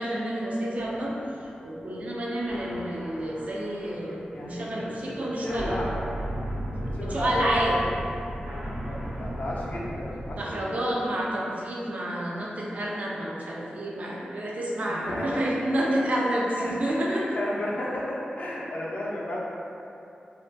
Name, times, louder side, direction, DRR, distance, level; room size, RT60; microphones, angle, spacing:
voice 1, 0.0-5.8 7.0-7.8 10.3-17.4, right 1 dB, 50° right, -4 dB, 0.4 m, -29 dB
sound 1, 0.8-10.5, equal, 80° right, 0.7 m, -36 dB
voice 2, 4.3-6.0 6.8-7.6 8.9-10.9 14.8-15.5 15.8-16.0 16.6-19.4, left 1 dB, 55° left, -5 dB, 0.4 m, -34 dB
2.3 x 2.1 x 2.6 m, 2.8 s
wide cardioid pair, 120°, 3 cm